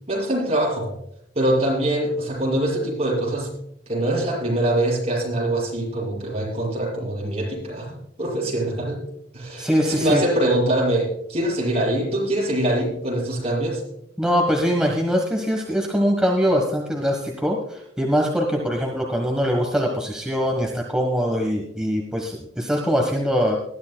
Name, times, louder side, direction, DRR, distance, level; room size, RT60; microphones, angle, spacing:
voice 1, 0.1-0.9 1.3-3.5 3.9-9.0 9.3-13.8, right 1 dB, 35° right, -4 dB, 6.0 m, -23 dB
voice 2, 9.6-10.2 14.2-23.6, equal, 5° right, 0 dB, 1.3 m, -22 dB
20.0 x 12.5 x 2.3 m, 0.75 s
head